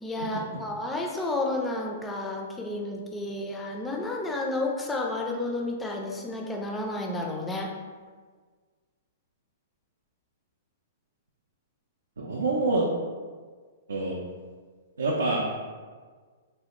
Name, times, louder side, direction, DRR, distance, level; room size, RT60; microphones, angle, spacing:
voice 1, 0.0-7.7, left 2 dB, 10° left, 0 dB, 0.4 m, -31 dB
voice 2, 12.2-12.9 13.9-14.2 15.0-15.5, right 2 dB, 90° right, -3 dB, 0.4 m, -26 dB
3.2 x 2.2 x 2.9 m, 1.5 s
hypercardioid pair, 125°, 0 cm